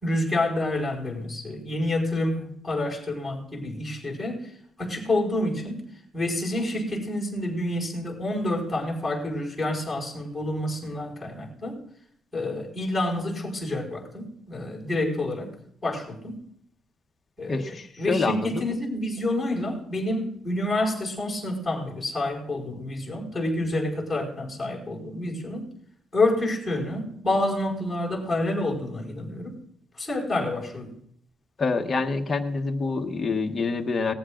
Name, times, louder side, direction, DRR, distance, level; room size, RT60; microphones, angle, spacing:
voice 1, 0.0-4.4 4.8-5.8 6.1-11.8 12.3-15.5 15.8-16.4 17.4-17.6 18.0-25.7 26.1-29.5 30.0-30.9, left 1 dB, 5° left, -3 dB, 5.0 m, -28 dB
voice 2, 17.5-18.7 31.6-34.1, left 4 dB, 20° left, 3 dB, 1.2 m, -26 dB
19.5 x 14.5 x 2.5 m, 0.68 s
cardioid pair, 165°, 0 cm